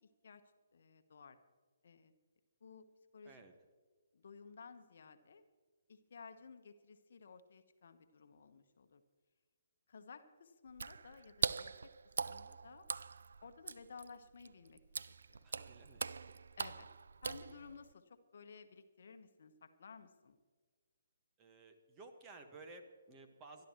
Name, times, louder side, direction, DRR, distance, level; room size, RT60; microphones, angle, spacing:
voice 1, 0.0-0.4 0.7-1.4 1.8-2.1 2.6-3.4 4.1-5.4 5.9-9.0 9.9-11.7 12.3-12.9 13.4-15.5 16.6-16.9 17.2-20.4, left 5 dB, 55° left, 9 dB, 1.1 m, -56 dB
Water / Splash splatter, 10.7-17.9, right 5 dB, 65° right, 0.4 m, -42 dB
voice 2, 15.4-16.4 21.4-23.6, right 3 dB, 20° right, 5 dB, 1.5 m, -56 dB
24.5 x 12.0 x 3.1 m, 1.5 s
figure-of-eight pair, 135°, 0 cm